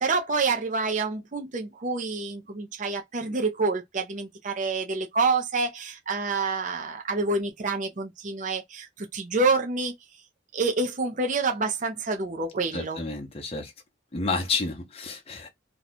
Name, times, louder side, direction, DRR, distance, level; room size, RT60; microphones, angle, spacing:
voice 1, 0.0-9.9 10.5-13.0, right 3 dB, 40° right, 0.5 m, -27 dB
voice 2, 12.7-13.7 14.1-15.5, left 3 dB, 30° left, 0.7 m, -30 dB
2.7 x 2.3 x 4.1 m
head